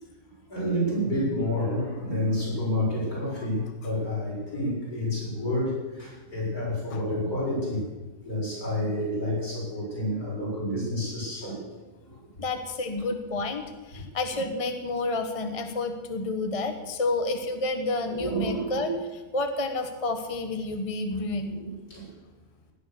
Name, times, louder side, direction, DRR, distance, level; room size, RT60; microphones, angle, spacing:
voice 1, 0.5-7.8 8.2-11.6 18.1-19.0 21.4-22.1, equal, 65° left, -6 dB, 7.8 m, -29 dB
voice 2, 12.4-21.6, left 2 dB, 25° left, 6 dB, 1.2 m, -30 dB
18.0 x 9.8 x 6.9 m, 1.2 s
omnidirectional pair, 1.7 m